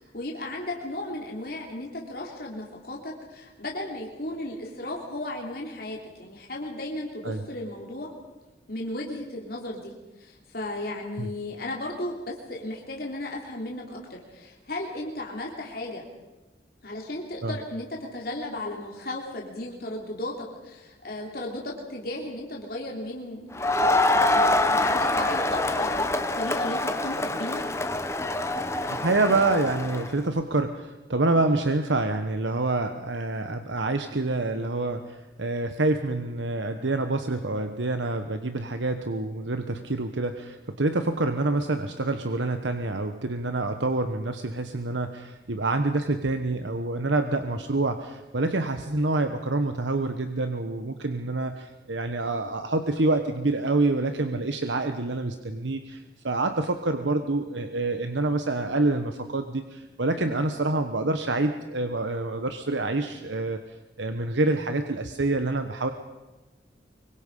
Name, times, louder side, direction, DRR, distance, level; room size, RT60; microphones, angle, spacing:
voice 1, 0.0-8.1 8.7-16.0 16.8-24.0 24.3-27.6 60.2-60.5, left 1 dB, 55° left, -1 dB, 3.3 m, -35 dB
Crowd, 23.5-30.1, left 2 dB, 15° left, 1.1 m, -25 dB
voice 2, 28.9-63.6 64.0-65.9, right 2 dB, 80° right, 7 dB, 1.2 m, -27 dB
24.5 x 23.5 x 5.5 m, 1.1 s
head